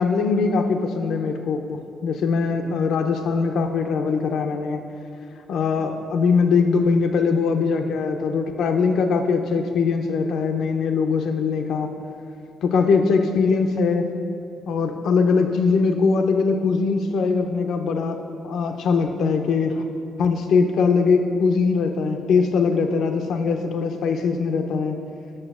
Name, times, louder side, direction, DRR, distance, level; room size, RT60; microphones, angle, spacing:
voice 1, 0.0-4.8 5.5-11.9 12.6-14.1 14.7-18.2 18.4-19.8 20.2-25.0, left 5 dB, 70° left, 5 dB, 0.6 m, -21 dB
8.9 x 6.2 x 6.0 m, 2.5 s
cardioid pair, 90°, 0 cm